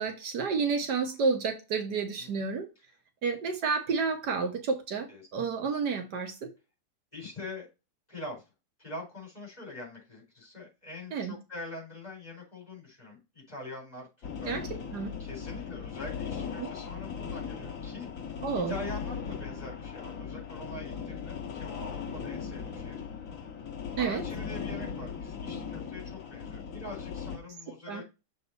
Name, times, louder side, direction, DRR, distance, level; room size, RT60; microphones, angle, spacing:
voice 1, 0.0-2.7 3.2-6.5 11.1-11.3 14.5-14.6 14.9-15.1 16.6-16.7 18.4-18.8 24.0-24.2 27.9-28.0, right 5 dB, 75° right, 1.6 m, -30 dB
voice 2, 5.1-5.5 7.1-7.7 8.1-8.4 8.8-14.6 15.2-18.1 18.5-23.0 24.0-28.0, left 2 dB, 25° left, 4.2 m, -44 dB
sound 1, 14.2-27.4, left 6 dB, 55° left, 1.6 m, -38 dB
6.9 x 4.1 x 4.0 m
omnidirectional pair, 1.8 m